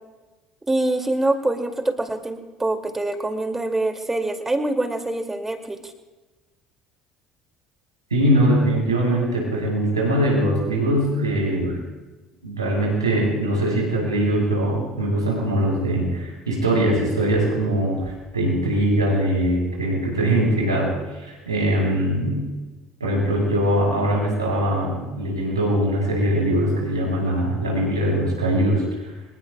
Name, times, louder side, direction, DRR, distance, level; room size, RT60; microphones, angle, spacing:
voice 1, 0.7-5.8, right 2 dB, 15° right, 5 dB, 2.3 m, -24 dB
voice 2, 8.1-11.8 12.4-22.4 23.0-28.8, right 1 dB, 85° right, -4 dB, 7.2 m, -22 dB
25.0 x 21.5 x 2.3 m, 1.2 s
figure-of-eight pair, 60°, 2 cm